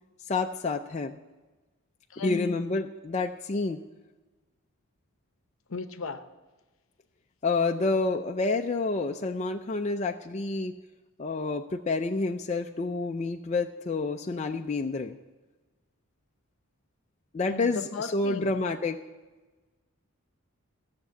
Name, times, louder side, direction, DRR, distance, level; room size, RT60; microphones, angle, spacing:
voice 1, 0.3-1.2 2.2-3.8 7.4-10.8 11.2-15.2 17.3-19.0, left 3 dB, 30° left, 4 dB, 0.4 m, -29 dB
voice 2, 2.1-2.6 5.7-6.2 17.5-18.5, left 4 dB, 65° left, 10 dB, 0.8 m, -35 dB
15.0 x 6.8 x 8.3 m, 1.2 s
head